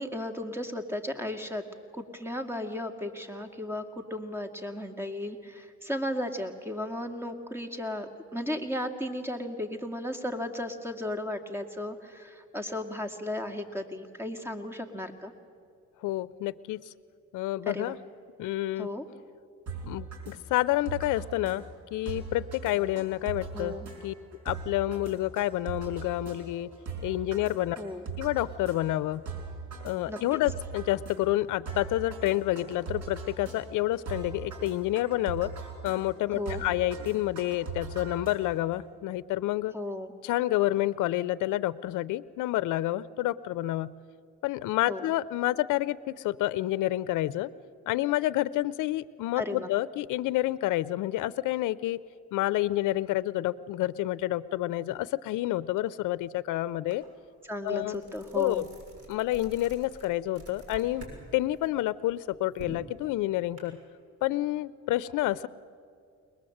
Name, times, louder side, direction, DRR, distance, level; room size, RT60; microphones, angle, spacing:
voice 1, 0.0-1.6 1.9-15.3 17.7-18.0 18.8-19.0 23.5-23.9 27.8-28.1 30.1-30.2 36.3-36.6 39.7-40.1 44.9-45.1 49.4-49.7 57.4-58.6, left 1 dB, 10° right, 5 dB, 2.0 m, -35 dB
voice 2, 16.0-16.8 17.3-18.0 18.4-18.9 19.8-21.7 21.9-23.8 24.0-24.1 24.5-26.7 27.0-27.8 28.2-29.2 29.8-35.5 35.8-39.7 40.2-43.9 44.4-47.5 47.9-52.0 52.3-57.0 57.6-58.0 58.4-58.7 59.1-61.1 61.3-63.8 64.2-65.5, left 15 dB, 85° left, 18 dB, 0.5 m, -29 dB
sound 1, 19.7-38.8, right 4 dB, 70° right, 4.9 m, -40 dB
sound 2, 56.9-57.0 57.4-61.2 61.5-63.6, right 2 dB, 50° right, 6.8 m, -48 dB
22.0 x 20.0 x 7.8 m, 2.3 s
cardioid pair, 90°, 30 cm